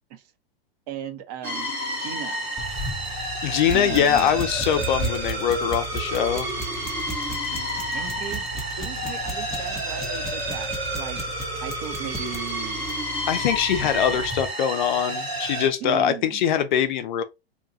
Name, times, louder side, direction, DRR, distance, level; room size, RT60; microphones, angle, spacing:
voice 1, 0.9-1.7 2.0-2.5 3.7-4.4 7.9-8.5 8.8-11.2 11.6-12.9 13.7-14.2 15.8-16.4, right 9 dB, 40° right, 0.6 m, -36 dB
sound 1, 1.4-15.7, right 1 dB, 90° right, 1.6 m, -30 dB
sound 2, 2.6-14.5, right 1 dB, ahead, 0.6 m, -35 dB
voice 2, 3.4-6.5 13.3-17.2, left 9 dB, 50° left, 0.5 m, -23 dB
2.9 x 2.2 x 2.6 m
figure-of-eight pair, 100°, 31 cm